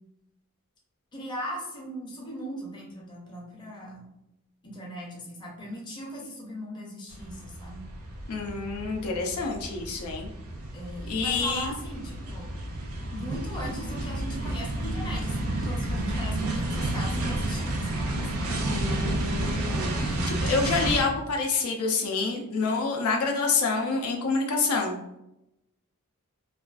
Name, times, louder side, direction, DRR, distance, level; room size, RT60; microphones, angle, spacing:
voice 1, 1.1-4.1 4.6-7.9 10.7-12.5 13.1-18.8, equal, 20° left, -3 dB, 0.5 m, -39 dB
sound 1, 7.1-21.0, right 1 dB, 70° right, 0.5 m, -31 dB
voice 2, 8.3-10.3 11.1-11.7 18.6-25.2, left 4 dB, 80° left, 1 dB, 0.5 m, -28 dB
2.4 x 2.3 x 2.3 m, 0.87 s
head